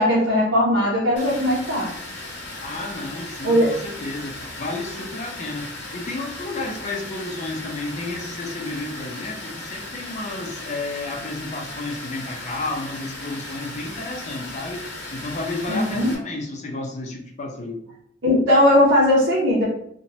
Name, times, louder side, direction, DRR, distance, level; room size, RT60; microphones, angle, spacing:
voice 1, 0.0-1.9 3.4-3.7 15.7-16.1 18.2-19.6, left 1 dB, 90° right, -6 dB, 0.7 m, -18 dB
Water, 1.2-16.1, left 2 dB, 70° left, 0.8 m, -36 dB
voice 2, 2.6-17.8, left 2 dB, 40° left, 1 dB, 0.5 m, -32 dB
3.0 x 2.2 x 2.7 m, 0.69 s
head